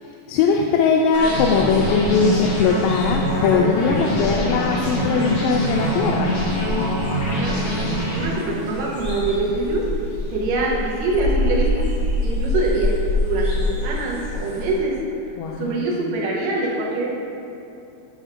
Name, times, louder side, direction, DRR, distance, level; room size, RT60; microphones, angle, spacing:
voice 1, 0.0-6.3 15.4-15.9, left 5 dB, 85° left, 1 dB, 2.2 m, -20 dB
sound 1, 1.1-8.8, equal, 55° left, 2.8 m, -24 dB
sound 2, 1.1-14.7, left 1 dB, 20° left, 0.8 m, -27 dB
voice 2, 7.4-9.8 10.3-11.9 12.2-12.9 13.2-14.9 15.6-17.1, right 2 dB, 75° right, -4 dB, 2.7 m, -24 dB
8.1 x 4.3 x 5.8 m, 2.8 s
omnidirectional pair, 3.9 m